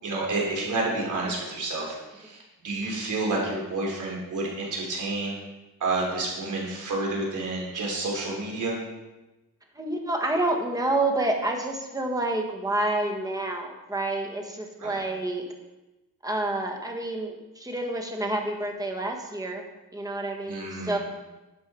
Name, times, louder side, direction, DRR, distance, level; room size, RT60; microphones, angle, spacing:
voice 1, 0.0-2.4 2.6-5.3 5.8-8.8 14.8-15.0 20.5-21.0, right 2 dB, 55° right, -2 dB, 3.5 m, -29 dB
voice 2, 9.7-15.5 16.2-19.7 19.9-21.0, right 2 dB, 10° right, 1 dB, 1.5 m, -28 dB
11.5 x 7.0 x 4.4 m, 1.1 s
wide cardioid pair, 155°, 36 cm